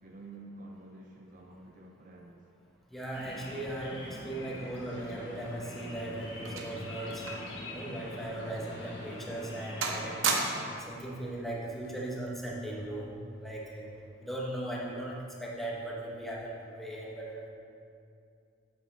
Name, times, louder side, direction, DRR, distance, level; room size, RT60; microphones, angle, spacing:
voice 1, 0.0-2.4, right 2 dB, 40° right, 0 dB, 0.5 m, -49 dB
voice 2, 2.9-7.3 7.7-10.2 10.9-13.1 13.4-13.9 14.2-17.5, right 1 dB, ahead, -4 dB, 1.0 m, -38 dB
sound 1, 3.1-10.2, left 1 dB, 65° left, 1.4 m, -44 dB
sound 2, 5.5-7.6 7.9-8.1 8.7-8.8 9.3-9.6 9.8-10.9 11.8-12.1, right 4 dB, 80° right, 0.8 m, -34 dB
8.7 x 7.2 x 3.3 m, 2.5 s
head